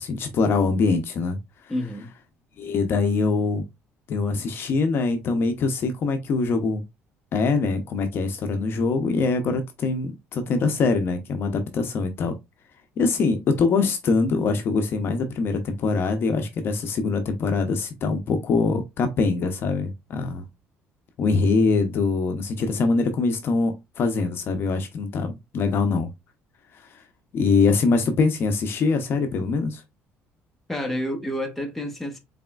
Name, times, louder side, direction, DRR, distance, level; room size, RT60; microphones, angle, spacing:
voice 1, 0.0-1.4 2.6-3.6 4.1-6.8 7.3-12.3 13.0-20.5 21.2-26.1 26.7-27.0 27.3-29.8, left 4 dB, 50° left, 0.7 m, -23 dB
voice 2, 1.7-2.1 30.7-32.2, left 1 dB, 5° left, 1.1 m, -29 dB
4.1 x 3.5 x 2.2 m
cardioid pair, 135°, 5 cm